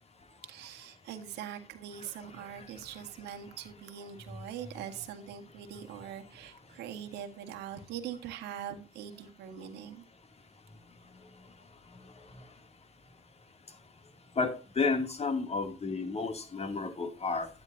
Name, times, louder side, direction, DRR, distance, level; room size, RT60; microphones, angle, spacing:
voice 1, 0.4-10.0, right 9 dB, 80° right, 1.8 m, -42 dB
voice 2, 14.4-17.5, left 4 dB, 40° left, 2.7 m, -31 dB
12.0 x 11.0 x 2.7 m
supercardioid pair, 60°, 17 cm